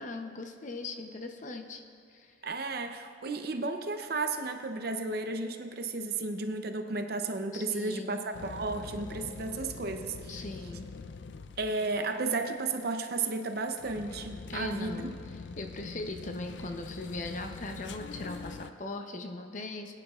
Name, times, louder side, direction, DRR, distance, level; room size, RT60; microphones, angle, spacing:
voice 1, 0.0-1.8 2.1-2.4 7.5-8.2 10.3-10.9 14.5-15.1 15.6-19.9, left 2 dB, 40° left, 5 dB, 0.7 m, -39 dB
voice 2, 2.4-10.4 11.6-15.1, right 3 dB, 55° right, 6 dB, 0.7 m, -33 dB
sound 1, 8.3-18.7, left 4 dB, 75° left, 0.5 m, -44 dB
20.5 x 9.9 x 2.4 m, 2.5 s
head